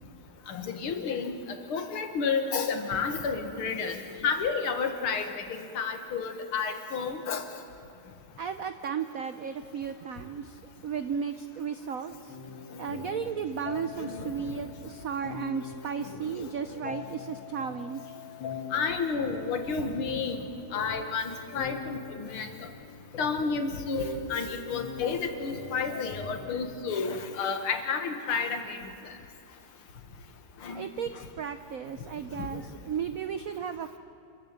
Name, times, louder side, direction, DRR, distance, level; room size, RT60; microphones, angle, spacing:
voice 1, 0.5-1.3 1.7-7.4 14.0-14.3 16.2-16.5 18.7-20.4 20.7-22.5 23.2-28.8 30.6-30.9 32.5-32.6, left 5 dB, 75° left, 7 dB, 2.4 m, -31 dB
voice 2, 8.4-12.4 12.8-18.2 30.7-34.0, right 7 dB, 80° right, 10 dB, 0.7 m, -35 dB
sound 1, 12.3-27.2, left 5 dB, 60° left, 2.6 m, -42 dB
27.0 x 14.0 x 8.8 m, 2.7 s
omnidirectional pair, 2.4 m